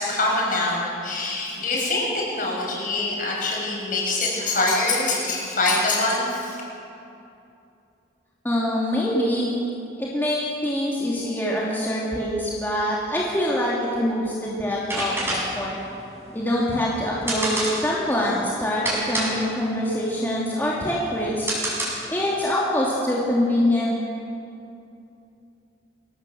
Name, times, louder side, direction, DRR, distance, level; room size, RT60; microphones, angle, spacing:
voice 1, 0.0-6.6, left 2 dB, 50° left, -2 dB, 7.4 m, -24 dB
voice 2, 8.4-9.5 10.0-15.8 16.3-21.5 22.1-23.9, left 1 dB, 10° left, -6 dB, 2.8 m, -24 dB
sound 1, 14.7-22.3, right 1 dB, 15° right, 7.1 m, -29 dB
24.5 x 18.5 x 7.9 m, 2.7 s
head